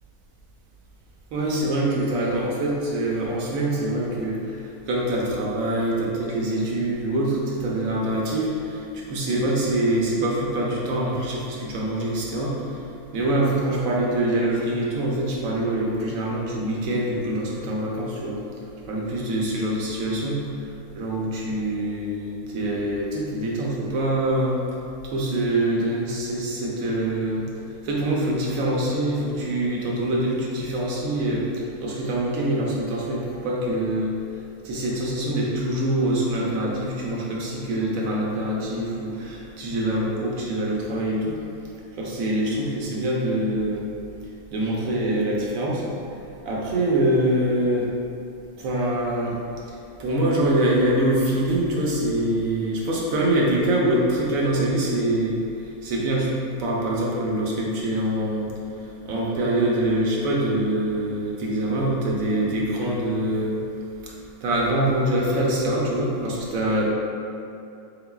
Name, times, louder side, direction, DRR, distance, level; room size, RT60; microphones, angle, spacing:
voice 1, 1.3-12.8 13.1-18.4 18.8-24.6 25.0-34.2 34.6-41.4 42.0-43.9 44.5-45.8 46.4-47.9 48.6-49.4 49.6-56.3 56.6-58.5 58.8-63.6 64.0-64.1 64.4-66.9, right 1 dB, 70° right, -3 dB, 1.0 m, -24 dB
3.9 x 3.7 x 2.3 m, 2.6 s
omnidirectional pair, 1.6 m